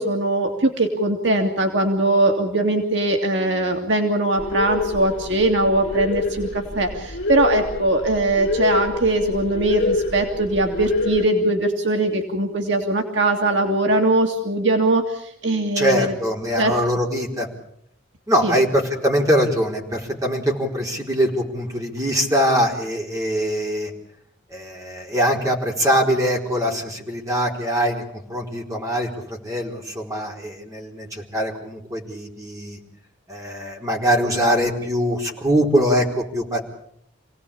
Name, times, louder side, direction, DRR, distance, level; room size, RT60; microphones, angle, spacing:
voice 1, 0.0-16.1 16.6-16.7 18.4-18.6, right 2 dB, 70° right, 3 dB, 2.4 m, -21 dB
sound 1, 4.4-11.2, left 2 dB, 70° left, 2.3 m, -27 dB
voice 2, 15.8-17.5 18.3-23.9 24.5-28.0 28.3-32.8 33.3-36.6, equal, 15° right, 0 dB, 4.3 m, -22 dB
27.5 x 18.0 x 8.6 m, 0.71 s
head